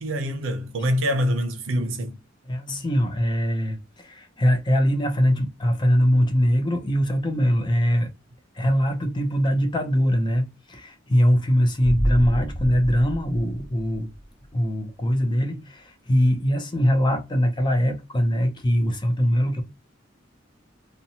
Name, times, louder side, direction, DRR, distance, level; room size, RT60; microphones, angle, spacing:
voice 1, 0.0-2.2, equal, 85° right, 0.6 m, -25 dB
voice 2, 2.5-8.1 8.5-14.1 14.5-19.6, equal, 25° left, 0.5 m, -22 dB
sound 1, 11.8-14.5 14.8-14.9, equal, 85° left, 1.1 m, -29 dB
2.6 x 2.1 x 2.7 m
head